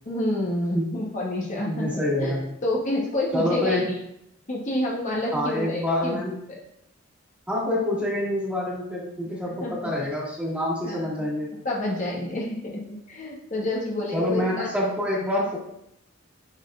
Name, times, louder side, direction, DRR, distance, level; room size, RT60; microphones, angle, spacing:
voice 1, 0.1-2.3 2.6-4.0 4.5-6.2 6.5-6.6 9.6-9.9 10.8-11.3 11.6-14.7, left 1 dB, 40° left, -3 dB, 0.9 m, -28 dB
voice 2, 1.7-2.5 3.3-3.9 5.3-6.4 7.5-11.5 14.1-15.6, left 1 dB, 5° right, -5 dB, 1.8 m, -26 dB
9.8 x 4.0 x 2.4 m, 0.77 s
head